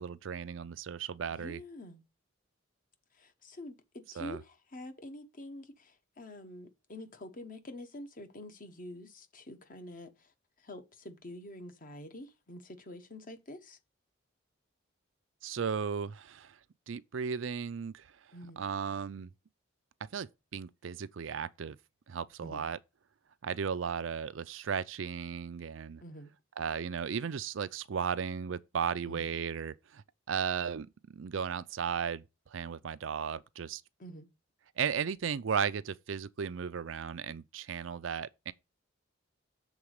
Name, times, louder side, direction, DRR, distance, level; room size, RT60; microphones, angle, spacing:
voice 1, 0.0-1.6 4.2-4.4 15.4-16.6 16.9-18.1 18.6-19.3 20.1-21.8 22.1-22.8 23.4-26.0 26.6-32.2 32.5-33.8 34.8-38.5, right 6 dB, 70° right, 0.5 m, -35 dB
voice 2, 1.3-2.0 3.2-10.3 10.6-13.8 18.3-18.6 22.4-22.6 26.0-26.3 29.1-29.3 34.0-34.3, left 1 dB, 45° left, 1.1 m, -47 dB
7.1 x 4.0 x 6.4 m
head